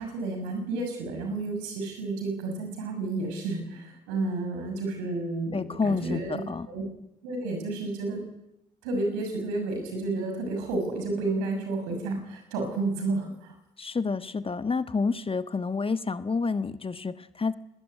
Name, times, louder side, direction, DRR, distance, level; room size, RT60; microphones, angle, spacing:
voice 1, 0.0-6.4 6.7-6.8 7.2-8.2 8.8-13.5, right 2 dB, 70° right, 5 dB, 6.6 m, -31 dB
voice 2, 5.5-6.7 13.8-17.5, left 4 dB, 25° left, 11 dB, 1.3 m, -29 dB
21.5 x 20.5 x 9.8 m, 0.85 s
figure-of-eight pair, 40°, 21 cm